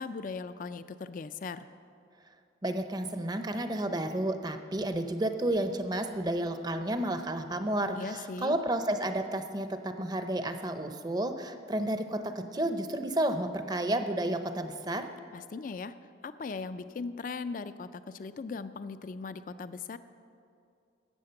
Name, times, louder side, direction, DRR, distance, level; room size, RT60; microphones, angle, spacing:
voice 1, 0.0-1.7 8.0-8.6 15.3-15.9 16.2-20.0, left 4 dB, 45° left, 13 dB, 0.3 m, -38 dB
voice 2, 2.6-15.1, right 1 dB, 20° right, 8 dB, 0.6 m, -31 dB
12.5 x 8.1 x 7.7 m, 2.5 s
head